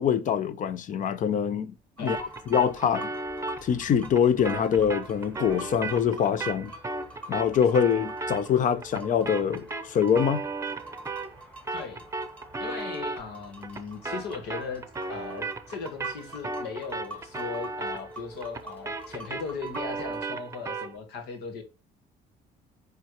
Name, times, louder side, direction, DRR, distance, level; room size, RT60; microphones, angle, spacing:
voice 1, 0.0-3.1 3.6-6.7 7.3-10.4, left 8 dB, 50° left, 0.7 m, -24 dB
sound 1, 2.0-20.3, right 1 dB, 10° left, 1.4 m, -47 dB
sound 2, 2.1-11.4 11.7-21.0, right 3 dB, 20° right, 0.8 m, -36 dB
voice 2, 11.7-12.1 12.6-14.8 15.1-21.6, left 5 dB, 80° left, 1.6 m, -38 dB
9.4 x 3.4 x 3.1 m
cardioid pair, 110°, 17 cm